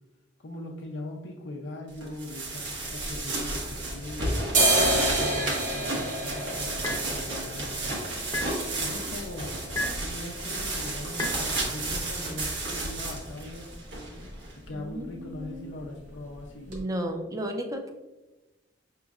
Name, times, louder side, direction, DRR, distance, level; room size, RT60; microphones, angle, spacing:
voice 1, 0.4-4.4 4.9-8.0 8.8-9.7 10.0-13.7 14.7-16.8, left 1 dB, 75° left, -1 dB, 0.6 m, -41 dB
sound 1, 2.0-14.5, right 2 dB, 75° right, 1.1 m, -32 dB
sound 2, 3.0-4.0 4.4-12.1 12.4-12.5 12.7-13.3 13.6-13.8 14.1-14.3 14.6-15.3 15.7-15.8 16.3-16.4 16.7-16.8, right 1 dB, 45° right, 1.2 m, -30 dB
sound 3, 5.4-5.6 6.8-7.1 8.3-8.5 9.7-10.1 11.2-11.4, left 2 dB, 20° left, 0.7 m, -32 dB
voice 2, 14.7-15.8 16.7-17.9, right 1 dB, 20° right, 4 dB, 0.5 m, -34 dB
6.0 x 3.0 x 2.4 m, 1.1 s
head